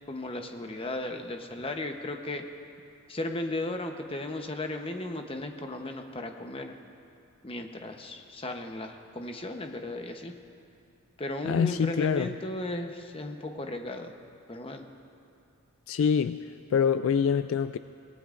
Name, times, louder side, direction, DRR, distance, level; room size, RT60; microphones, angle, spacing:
voice 1, 0.1-2.5 3.1-6.8 7.4-10.3 11.2-14.1 14.5-14.9, left 2 dB, 25° left, 4 dB, 0.9 m, -35 dB
voice 2, 11.4-12.3 15.9-16.4 16.7-17.8, left 7 dB, 65° left, 12 dB, 0.3 m, -25 dB
24.0 x 18.5 x 2.5 m, 2.5 s
head